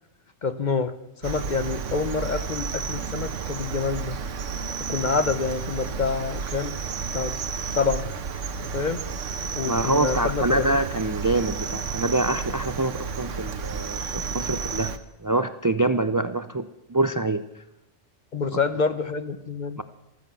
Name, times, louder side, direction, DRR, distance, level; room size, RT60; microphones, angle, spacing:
voice 1, 0.4-0.9 1.2-4.2 4.9-6.8 7.1-7.4 7.7-8.1 8.6-9.0 9.5-10.7 18.3-19.8, left 4 dB, 40° left, 11 dB, 0.9 m, -27 dB
Cricket, 1.2-15.0, right 5 dB, 80° right, 1.3 m, -32 dB
voice 2, 9.6-14.9 15.2-17.4 19.8-19.9, right 2 dB, 30° right, 11 dB, 0.3 m, -25 dB
14.5 x 14.5 x 6.9 m, 0.97 s
omnidirectional pair, 1.3 m